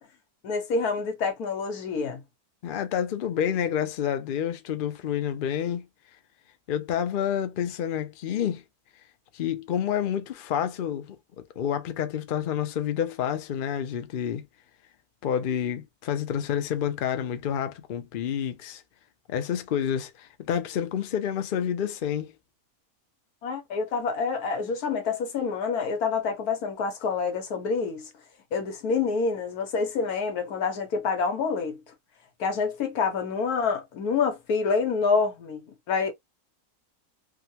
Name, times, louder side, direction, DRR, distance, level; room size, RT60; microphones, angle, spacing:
voice 1, 0.4-2.2 23.4-28.1 28.5-31.8 32.4-36.1, left 5 dB, 80° left, 1.5 m, -27 dB
voice 2, 2.6-5.8 6.7-8.6 9.3-14.4 15.2-18.8 19.3-22.3, left 9 dB, 65° left, 0.5 m, -29 dB
3.6 x 2.1 x 2.7 m
omnidirectional pair, 1.6 m